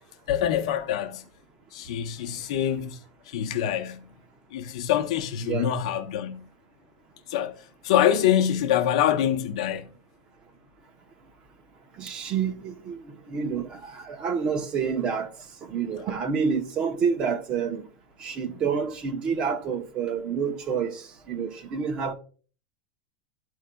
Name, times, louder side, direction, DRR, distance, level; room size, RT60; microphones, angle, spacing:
voice 1, 0.3-1.2 1.7-3.0 3.3-4.0 4.5-6.4 7.3-7.5 7.8-9.9, left 10 dB, 65° left, 0.8 m, -25 dB
voice 2, 12.0-13.0 13.3-15.3 15.7-17.8 18.2-21.0 21.3-22.1, right 6 dB, 25° right, 0.8 m, -28 dB
13.0 x 4.9 x 2.2 m
supercardioid pair, 170°, 4 cm